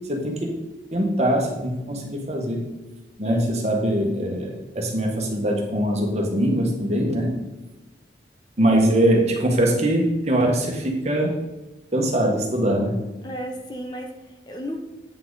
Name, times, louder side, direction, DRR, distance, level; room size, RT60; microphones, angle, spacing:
voice 1, 0.1-0.6 0.9-2.6 3.2-7.3 8.6-11.3 11.9-13.0, right 1 dB, 35° right, 0 dB, 1.4 m, -22 dB
voice 2, 13.2-14.7, equal, 25° left, 3 dB, 0.8 m, -35 dB
8.7 x 5.8 x 4.0 m, 1.1 s
head